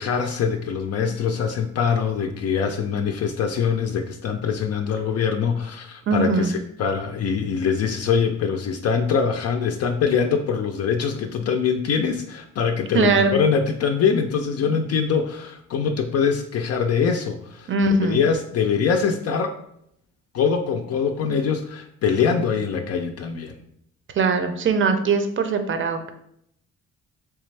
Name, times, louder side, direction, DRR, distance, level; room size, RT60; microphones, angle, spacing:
voice 1, 0.0-6.5 6.8-17.7 18.0-19.6 20.3-23.5, left 6 dB, 55° left, 4 dB, 0.4 m, -23 dB
voice 2, 6.1-6.5 12.9-13.4 17.7-18.2 24.1-26.1, right 4 dB, 40° right, 7 dB, 0.6 m, -21 dB
3.4 x 3.3 x 3.2 m, 0.73 s
cardioid pair, 90°, 30 cm